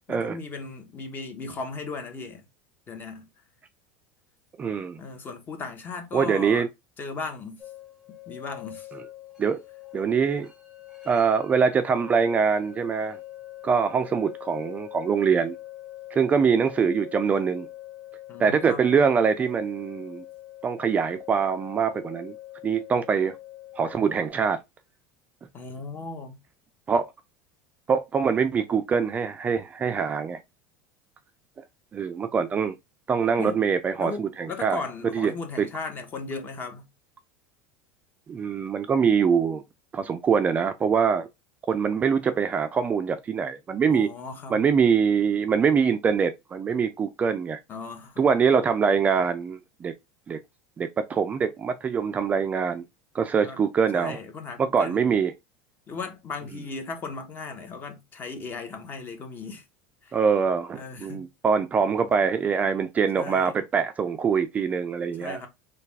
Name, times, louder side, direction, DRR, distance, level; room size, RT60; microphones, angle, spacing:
voice 1, 0.0-2.5 2.9-3.3 5.0-6.6 7.0-7.6 8.3-8.9 18.3-18.9 25.5-26.4 33.4-33.6 34.0-36.9 43.9-44.7 47.7-48.2 53.4-53.6 53.9-55.2 55.9-59.6 60.0-60.2 60.7-61.2 63.1-63.5 65.2-65.5, left 4 dB, 30° left, 1.0 m, -37 dB
voice 2, 4.6-5.0 6.1-6.7 9.4-9.6 9.9-10.5 11.1-13.2 13.6-15.5 16.1-17.7 18.4-20.2 20.6-22.3 22.6-23.4 23.8-24.6 26.9-27.1 27.9-30.4 31.9-32.7 33.1-34.8 35.1-35.3 35.6-35.7 38.3-39.6 39.9-41.3 41.7-44.1 44.5-47.6 48.2-49.9 50.3-50.4 50.8-52.8 53.1-54.2 54.6-55.3 60.1-65.4, right 6 dB, 25° right, 0.3 m, -24 dB
sound 1, 7.6-24.3, left 15 dB, ahead, 1.0 m, -44 dB
3.3 x 2.3 x 3.3 m
supercardioid pair, 120°, 7 cm